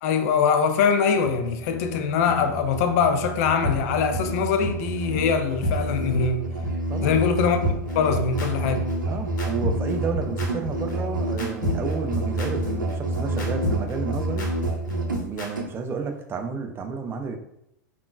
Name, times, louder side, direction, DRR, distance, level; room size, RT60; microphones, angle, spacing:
voice 1, 0.0-6.5 7.0-7.6 7.9-8.9, left 6 dB, 50° left, 0.4 m, -23 dB
Musical instrument, 1.1-15.7, right 1 dB, 85° right, 0.5 m, -29 dB
sound 1, 3.6-3.7 4.1-4.2 4.6-4.7 5.1-5.2 5.6-5.7 6.1-6.2 6.6-6.7 7.1-7.2 7.6-15.5, left 2 dB, 70° left, 1.0 m, -29 dB
voice 2, 6.9-7.2 9.1-14.5 15.1-17.4, right 5 dB, 20° right, 0.4 m, -31 dB
3.5 x 2.4 x 2.3 m
figure-of-eight pair, 100°, 10 cm